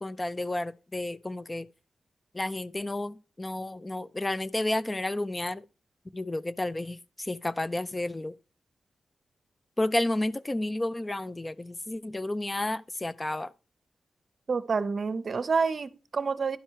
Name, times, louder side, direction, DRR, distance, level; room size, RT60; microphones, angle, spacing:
voice 1, 0.0-1.7 2.3-5.6 6.1-8.4 9.8-13.5, left 1 dB, 20° left, 0.4 m, -31 dB
voice 2, 14.5-16.6, right 5 dB, 55° right, 0.6 m, -28 dB
11.0 x 4.5 x 4.6 m
cardioid pair, 85°, 0 cm